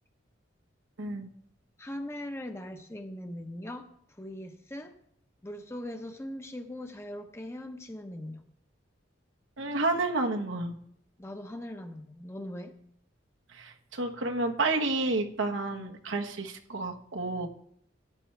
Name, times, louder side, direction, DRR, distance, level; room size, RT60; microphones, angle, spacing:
voice 1, 1.0-1.3 9.6-10.7 13.5-17.5, right 2 dB, 85° right, 3 dB, 1.3 m, -30 dB
voice 2, 1.8-5.0 5.4-8.4 11.2-12.7 15.7-16.0, left 1 dB, 15° left, 5 dB, 0.9 m, -40 dB
15.0 x 10.0 x 3.4 m, 0.65 s
head